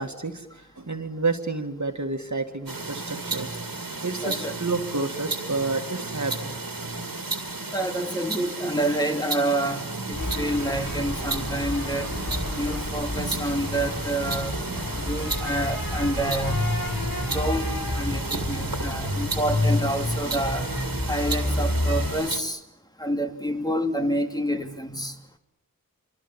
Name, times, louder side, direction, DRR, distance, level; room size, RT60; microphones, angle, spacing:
voice 1, 0.0-3.5 4.0-6.6, right 3 dB, 55° right, 6 dB, 2.3 m, -30 dB
sound 1, 2.7-22.4, right 3 dB, 80° right, 2.6 m, -33 dB
voice 2, 4.2-4.5 7.7-12.1 12.5-14.6 15.1-16.7 17.3-17.7 17.9-20.7 21.1-22.6 23.0-25.1, right 1 dB, 10° left, 4 dB, 2.6 m, -28 dB
sound 2, 10.1-22.1, left 1 dB, 90° left, 7.0 m, -29 dB
26.5 x 25.0 x 7.3 m, 0.83 s
wide cardioid pair, 40°, 34 cm